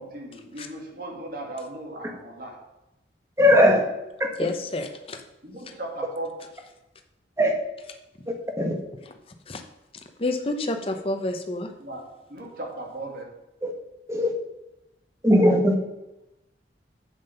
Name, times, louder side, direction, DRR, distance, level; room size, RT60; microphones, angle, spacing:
voice 1, 0.0-2.6 5.4-6.3 11.8-12.0 12.3-13.3, right 1 dB, 50° right, 2.3 m, -37 dB
voice 2, 3.4-3.8 7.4-7.5 8.6-8.7 13.6-13.7 14.1-14.3 15.2-15.8, left 1 dB, 15° right, 1.2 m, -18 dB
voice 3, 4.4-5.2 5.7-5.8 9.5-9.6 10.2-11.7, left 2 dB, 30° left, 0.8 m, -29 dB
7.4 x 7.2 x 5.7 m
head